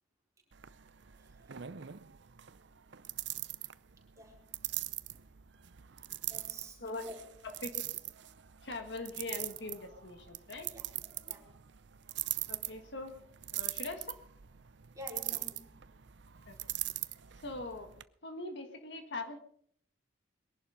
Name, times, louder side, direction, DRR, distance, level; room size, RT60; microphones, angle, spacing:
sound 1, 0.5-18.0, right 15 dB, 60° right, 0.6 m, -42 dB
voice 1, 6.3-7.1 7.4-7.5 10.7-11.5 14.9-15.8, left 1 dB, 15° right, -1 dB, 4.1 m, -49 dB
voice 2, 7.4-7.9 8.6-10.7 12.5-13.1 13.5-14.1 16.5-16.6 17.4-17.9 18.2-19.4, left 2 dB, 60° left, 6 dB, 1.7 m, -42 dB
22.0 x 11.5 x 5.0 m, 0.62 s
head